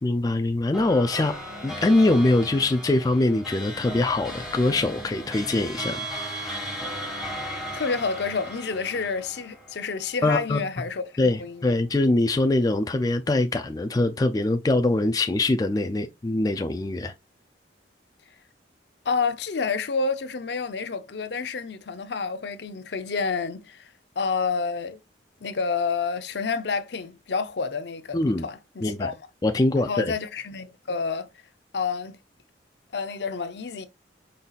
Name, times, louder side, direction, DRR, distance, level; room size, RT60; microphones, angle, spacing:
voice 1, 0.0-1.3 1.6-6.0 10.2-10.6 11.2-17.1 28.1-28.4 28.8-29.1 29.4-30.1, left 2 dB, 20° left, 0.3 m, -23 dB
sound 1, 0.7-10.4, equal, ahead, 1.6 m, -36 dB
voice 2, 7.7-11.8 19.1-23.9 24.2-25.0 25.4-29.2 29.8-31.3 31.7-32.2 32.9-33.9, left 5 dB, 65° left, 0.6 m, -29 dB
5.4 x 4.0 x 2.4 m
head